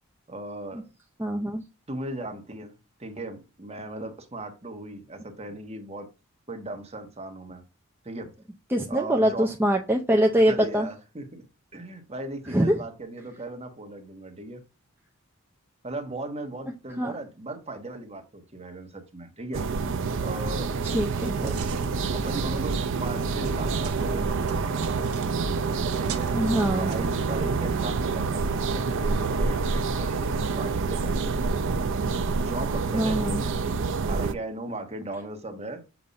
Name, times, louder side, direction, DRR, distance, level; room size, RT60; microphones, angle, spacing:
voice 1, 0.3-0.8 1.9-6.1 6.5-7.6 8.0-8.3 8.9-9.5 10.4-11.4 11.7-14.6 15.8-19.7 20.2-20.7 22.1-25.1 26.0-26.4 26.8-31.4 32.4-35.8, right 2 dB, 30° right, 1.2 m, -37 dB
voice 2, 1.2-1.6 8.7-10.9 12.5-12.7 17.0-17.1 20.8-21.5 26.3-26.9 32.9-33.4, equal, 10° right, 0.5 m, -23 dB
sound 1, 19.5-34.3, right 4 dB, 60° right, 0.5 m, -27 dB
sound 2, 20.8-27.9, right 5 dB, 90° right, 0.9 m, -41 dB
7.0 x 2.6 x 5.2 m
head